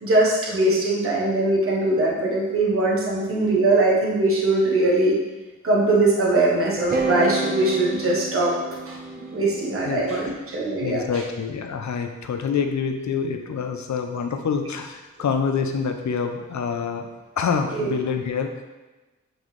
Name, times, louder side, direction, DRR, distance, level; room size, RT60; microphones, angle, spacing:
voice 1, 0.0-5.2 5.6-8.5 8.9-9.0 9.3-11.0 17.7-17.9, right 2 dB, 45° right, -4 dB, 1.1 m, -21 dB
sound 1, 6.8-10.9, right 3 dB, 30° right, 0.6 m, -29 dB
voice 2, 10.8-18.6, left 6 dB, 70° left, 6 dB, 0.6 m, -26 dB
7.8 x 3.8 x 3.2 m, 1.1 s
wide cardioid pair, 140°, 30 cm